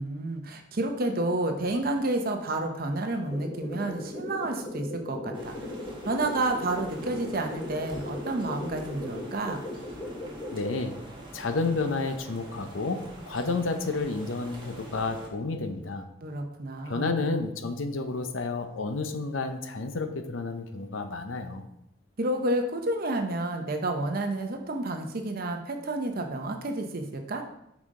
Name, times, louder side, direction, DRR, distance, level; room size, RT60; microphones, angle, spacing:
voice 1, 0.0-5.7 6.1-9.6 16.2-17.3 22.2-27.4, right 2 dB, 50° right, 4 dB, 0.7 m, -30 dB
sound 1, 3.3-10.8, left 2 dB, 20° left, 0.8 m, -38 dB
sound 2, 5.3-15.3, right 2 dB, 25° right, 1.3 m, -45 dB
voice 2, 10.5-11.0 11.3-16.1 16.9-21.6, left 3 dB, 90° left, 8 dB, 0.7 m, -31 dB
5.7 x 4.9 x 3.7 m, 0.81 s
head